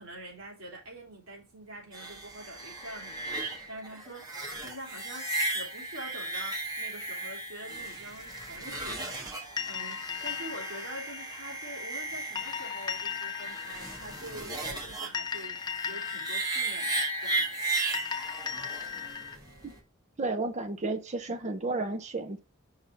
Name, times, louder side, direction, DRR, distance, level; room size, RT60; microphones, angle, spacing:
voice 1, 0.0-9.2 9.7-15.6 15.9-17.6, right 1 dB, 80° right, 3.0 m, -45 dB
sound 1, 1.9-19.8, right 2 dB, 20° right, 1.4 m, -36 dB
sound 2, 9.6-19.4, left 7 dB, 20° left, 0.6 m, -38 dB
voice 2, 20.2-22.4, right 3 dB, 35° right, 0.7 m, -32 dB
5.6 x 3.6 x 5.6 m
head